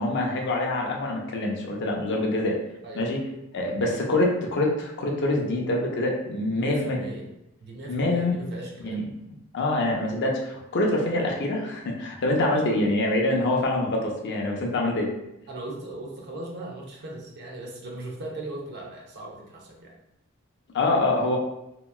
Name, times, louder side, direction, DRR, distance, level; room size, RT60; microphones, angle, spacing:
voice 1, 0.0-2.6 3.0-3.2 3.5-7.0 7.9-8.4 8.8-9.0 9.5-15.1 20.7-21.4, left 2 dB, 50° left, 0 dB, 0.5 m, -25 dB
voice 2, 6.5-7.3 7.6-9.1 15.5-19.9, right 2 dB, 50° right, -1 dB, 0.5 m, -38 dB
2.8 x 2.2 x 2.3 m, 0.86 s
head